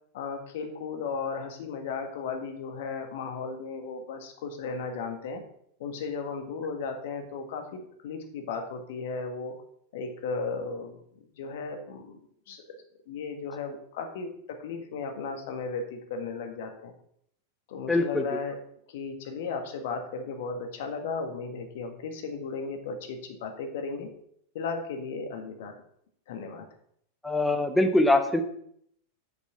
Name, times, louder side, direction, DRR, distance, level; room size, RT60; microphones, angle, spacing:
voice 1, 0.1-5.4 5.8-9.5 9.9-11.0 11.4-12.8 13.1-14.3 14.6-16.9 17.7-18.6 18.9-24.1 24.6-25.7 26.3-26.7, left 4 dB, 55° left, 5 dB, 1.6 m, -35 dB
voice 2, 17.9-18.4 27.2-28.4, left 2 dB, 5° left, 7 dB, 1.0 m, -23 dB
8.2 x 6.6 x 5.8 m, 0.68 s
figure-of-eight pair, 90°, 0 cm